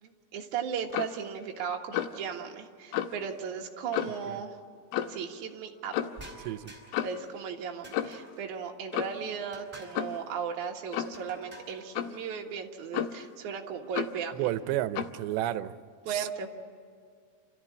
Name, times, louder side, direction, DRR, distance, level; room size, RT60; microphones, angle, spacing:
voice 1, 0.0-4.6 5.1-6.0 7.0-14.4 16.1-16.5, right 7 dB, 55° right, 1 dB, 2.4 m, -36 dB
Clock, 0.9-1.2 1.9-2.2 2.9-3.2 3.9-4.3 4.9-5.2 5.9-6.2 6.9-7.3 7.9-8.3 8.9-9.3 10.0-10.2 10.9-11.2 12.0-12.2 12.9-13.3 14.0-14.2 15.0-15.2, left 10 dB, 75° left, 2.4 m, -32 dB
sound 1, 6.2-7.1 7.8-8.5 9.5-10.1 11.1-11.9, right 2 dB, 10° right, 3.6 m, -49 dB
voice 2, 6.4-6.7 14.3-15.8 16.0-16.3, right 13 dB, 80° right, 12 dB, 2.9 m, -32 dB
28.5 x 14.0 x 9.7 m, 2.1 s
omnidirectional pair, 5.2 m